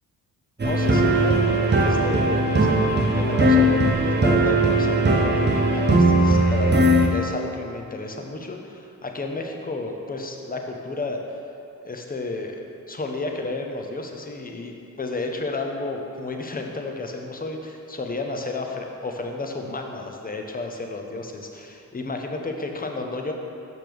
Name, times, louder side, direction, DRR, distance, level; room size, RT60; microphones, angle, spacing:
voice 1, 0.6-2.8 3.1-6.8 7.1-11.2 11.8-12.6 12.9-23.3, left 3 dB, 20° left, 3 dB, 0.8 m, -32 dB
sound 1, 0.6-7.1, right 1 dB, 25° right, 0.8 m, -19 dB
6.1 x 5.8 x 3.4 m, 2.7 s
hypercardioid pair, 45°, 46 cm